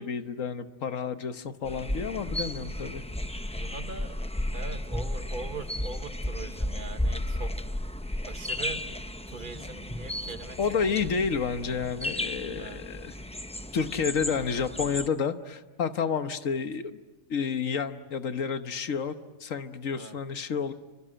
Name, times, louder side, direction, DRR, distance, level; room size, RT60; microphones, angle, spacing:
voice 1, 0.0-3.0 10.6-13.1 13.7-17.0 17.3-20.7, left 6 dB, 75° left, 9 dB, 1.5 m, -30 dB
sound 1, 1.6-15.1, left 1 dB, 10° left, 0.5 m, -34 dB
voice 2, 3.5-4.2 4.5-7.7 8.3-9.0 9.3-10.6 12.6-12.8 19.9-20.2, right 3 dB, 40° right, 8 dB, 1.5 m, -41 dB
29.0 x 24.0 x 7.8 m, 1.2 s
omnidirectional pair, 1.4 m